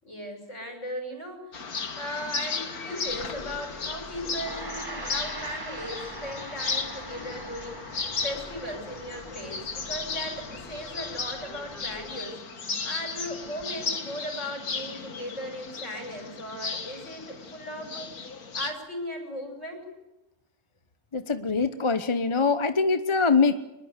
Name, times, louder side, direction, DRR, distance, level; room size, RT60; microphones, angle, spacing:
voice 1, 0.0-12.4 12.8-18.1 18.5-19.9, equal, 50° left, 4 dB, 6.6 m, -37 dB
sound 1, 1.5-18.7, left 4 dB, 70° left, 2.3 m, -35 dB
sound 2, 3.1-12.2, equal, ahead, 7.2 m, -49 dB
Gong, 4.3-14.0, right 2 dB, 15° right, 1.2 m, -44 dB
voice 2, 21.1-23.5, left 4 dB, 25° left, 10 dB, 0.8 m, -23 dB
23.5 x 21.0 x 8.2 m, 0.92 s
omnidirectional pair, 1.6 m